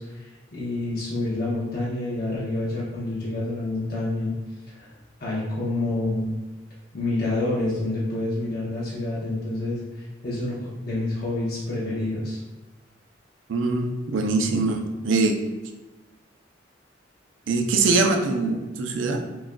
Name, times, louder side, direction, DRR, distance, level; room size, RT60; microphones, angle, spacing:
voice 1, 0.0-4.3 4.7-4.9 5.2-6.4 6.9-12.4, left 2 dB, 55° left, -7 dB, 0.8 m, -28 dB
voice 2, 13.5-15.4 17.5-19.2, right 3 dB, 80° right, 4 dB, 0.5 m, -23 dB
5.9 x 2.4 x 2.2 m, 1.1 s
head